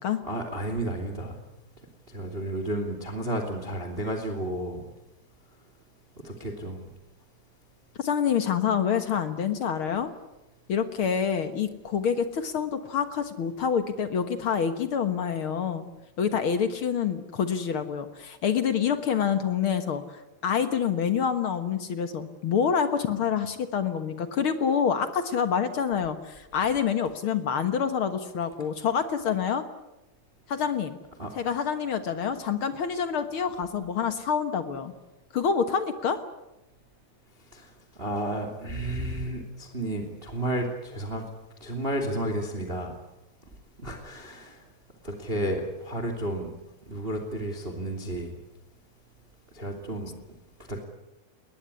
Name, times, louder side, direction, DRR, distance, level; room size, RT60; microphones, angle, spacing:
voice 1, 0.2-1.4 2.1-4.8 6.2-6.8 31.2-31.3 37.5-37.7 38.0-41.2 41.6-42.9 43.8-44.6 45.0-46.5 46.9-48.3 49.5-50.1 50.7-50.8, right 1 dB, 15° right, 6 dB, 2.5 m, -32 dB
voice 2, 8.0-10.1 10.7-15.9 16.2-29.6 30.5-31.0 31.3-34.9 35.3-36.2, left 7 dB, 60° left, 9 dB, 1.4 m, -27 dB
21.5 x 20.0 x 9.8 m, 0.95 s
omnidirectional pair, 4.3 m